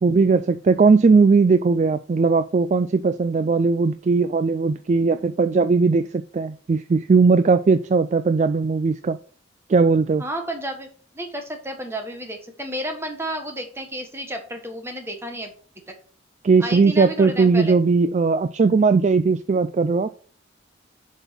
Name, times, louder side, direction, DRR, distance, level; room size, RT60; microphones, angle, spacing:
voice 1, 0.0-9.2 9.7-10.2 16.4-20.1, right 4 dB, 35° right, 0.3 m, -18 dB
voice 2, 10.2-10.9 11.1-15.5 16.6-17.8, right 1 dB, 15° right, 1.5 m, -31 dB
7.1 x 5.5 x 5.9 m
head